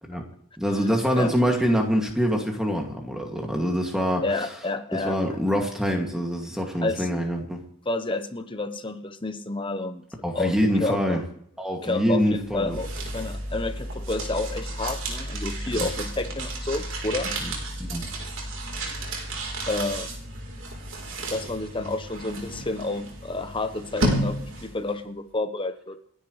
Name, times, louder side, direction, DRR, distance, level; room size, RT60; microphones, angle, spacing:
voice 1, 0.6-4.2 4.9-7.6 10.2-11.2 11.6-12.8 15.8-15.9 17.4-17.5 17.8-18.0, equal, 5° right, 1 dB, 2.3 m, -25 dB
voice 2, 4.2-5.2 6.8-7.1 7.9-10.0 10.3-11.2 11.8-17.3 19.7-20.1 21.3-26.0, left 2 dB, 20° left, 9 dB, 0.9 m, -30 dB
sound 1, 12.4-24.9, right 1 dB, 60° right, 3.9 m, -32 dB
28.5 x 10.0 x 3.3 m, 0.65 s
head